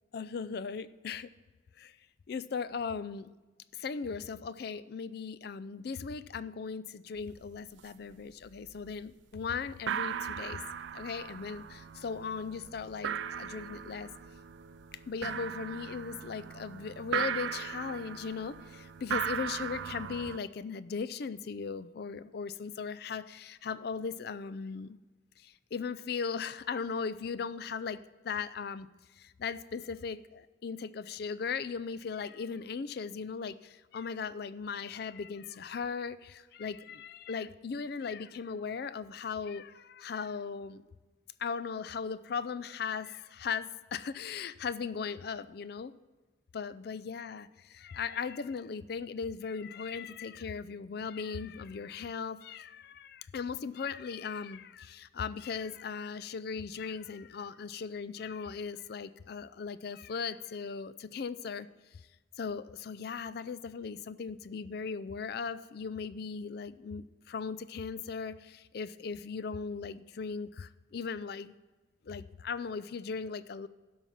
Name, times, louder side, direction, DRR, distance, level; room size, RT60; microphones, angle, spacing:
voice 1, 0.1-1.3 1.8-2.0 2.3-3.3 3.7-10.6 10.9-14.1 15.1-25.0 25.4-28.0 28.2-28.9 29.1-40.8 41.4-45.9 46.5-61.7 61.9-62.0 62.4-71.5 72.0-73.7, left 5 dB, 50° left, 16 dB, 0.4 m, -38 dB
sound 1, 7.2-7.3 7.6-8.1 8.4-9.0 9.3-9.4 9.7-20.4, right 8 dB, 65° right, 0.4 m, -38 dB
12.0 x 5.5 x 5.8 m, 1.2 s
head